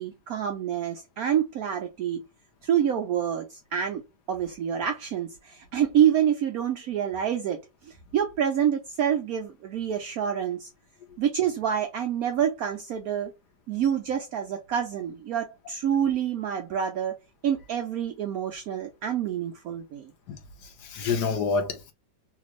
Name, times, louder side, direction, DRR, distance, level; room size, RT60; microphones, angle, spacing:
voice 1, 0.0-2.3 2.6-4.0 4.3-10.7 11.2-13.3 13.7-17.1 17.4-20.1, right 9 dB, 70° right, 0.8 m, -27 dB
voice 2, 20.3-21.9, left 4 dB, 70° left, 1.3 m, -28 dB
3.3 x 2.4 x 3.0 m
omnidirectional pair, 2.0 m